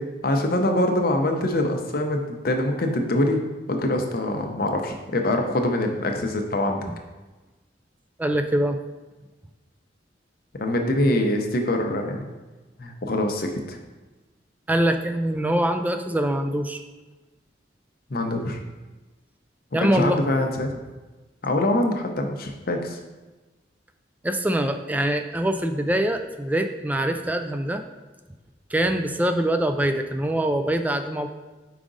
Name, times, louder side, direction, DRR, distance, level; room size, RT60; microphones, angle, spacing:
voice 1, 0.0-3.4 3.7-6.8 10.6-12.3 12.8-13.8 18.1-18.6 19.7-20.7 21.4-23.0, left 1 dB, 55° left, 3 dB, 0.7 m, -24 dB
voice 2, 8.2-8.8 14.7-16.8 19.7-20.2 24.2-27.8 28.7-31.3, right 1 dB, 10° right, 7 dB, 0.3 m, -24 dB
5.0 x 4.8 x 3.9 m, 1.2 s
head